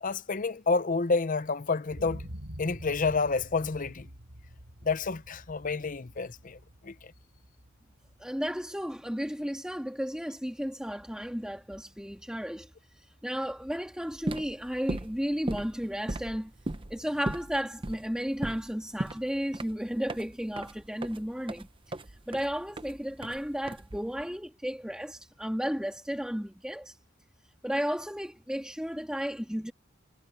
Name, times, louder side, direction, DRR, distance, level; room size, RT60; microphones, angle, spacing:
voice 1, 0.0-2.3 2.6-4.1 4.8-6.9, left 4 dB, 40° left, 0.7 m, -29 dB
sound 1, 1.9-9.8 10.2-10.3, equal, 75° right, 5.9 m, -47 dB
voice 2, 8.2-16.5 16.9-21.7 22.1-27.0 27.6-29.7, equal, 5° right, 2.0 m, -33 dB
sound 2, 14.1-24.3, right 1 dB, 25° right, 0.8 m, -38 dB
head